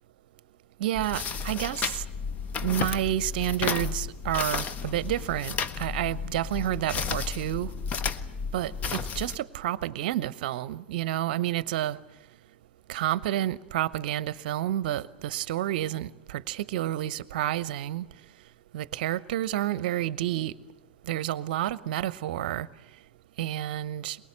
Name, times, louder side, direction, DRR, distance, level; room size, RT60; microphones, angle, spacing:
voice 1, 0.8-2.0 2.6-7.7 8.5-12.0 12.9-18.1 18.7-20.5 21.1-22.7 23.4-24.2, right 13 dB, 50° right, 0.8 m, -30 dB
sound 1, 1.0-9.4, left 6 dB, 25° left, 1.0 m, -33 dB
23.5 x 21.0 x 8.7 m
figure-of-eight pair, 100°, 6 cm